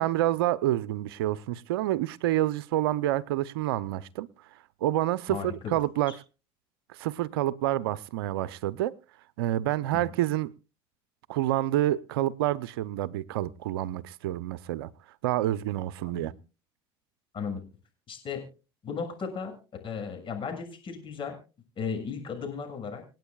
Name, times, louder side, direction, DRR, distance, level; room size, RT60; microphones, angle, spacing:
voice 1, 0.0-4.3 4.8-6.1 7.0-9.0 9.4-10.5 11.3-14.9 15.2-16.3, right 14 dB, 80° right, 0.7 m, -28 dB
voice 2, 5.3-5.7 9.9-10.0 16.0-16.4 17.3-17.6 18.1-18.5 18.8-19.5 19.8-21.4 21.7-23.0, left 6 dB, 45° left, 6.6 m, -35 dB
27.5 x 9.2 x 2.4 m
hypercardioid pair, 75°, 12 cm